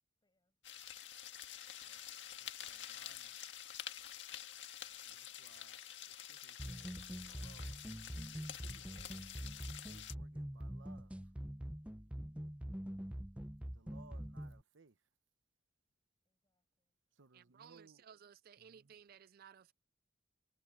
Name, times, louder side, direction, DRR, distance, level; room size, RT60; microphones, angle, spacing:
voice 1, 0.2-1.1 4.2-4.6 16.2-17.0, left 1 dB, 20° left, 7.6 m, -89 dB
sound 1, 0.6-10.1, left 10 dB, 70° left, 1.8 m, -49 dB
voice 2, 2.4-3.4 5.0-5.8 6.1-7.8 8.3-9.2 9.9-11.2 13.6-15.0 17.2-18.0 18.6-18.9, right 4 dB, 80° right, 0.9 m, -64 dB
sound 2, 6.6-14.6, equal, 5° right, 0.6 m, -45 dB
voice 3, 17.3-19.7, right 8 dB, 50° right, 0.4 m, -59 dB
head